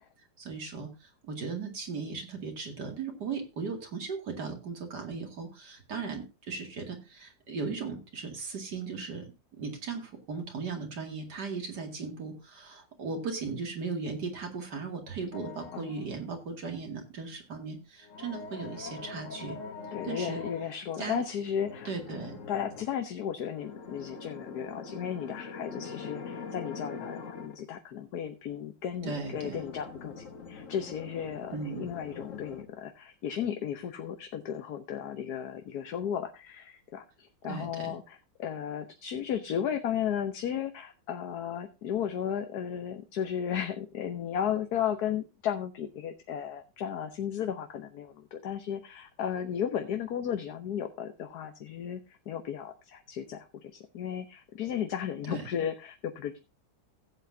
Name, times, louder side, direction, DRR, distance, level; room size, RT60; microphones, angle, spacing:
voice 1, 0.4-19.6 20.0-20.4 21.0-21.2 21.8-22.4 29.0-29.6 31.5-31.9 37.4-38.0 55.2-55.5, right 4 dB, 60° right, 3 dB, 2.8 m, -37 dB
sound 1, 15.3-16.2 18.0-20.7 21.5-22.9 23.5-27.6 29.0-32.6, left 4 dB, 45° left, 1.7 m, -43 dB
voice 2, 19.9-21.9 22.5-56.4, left 9 dB, 60° left, 6 dB, 1.3 m, -34 dB
16.0 x 8.1 x 2.7 m, 0.28 s
omnidirectional pair, 2.0 m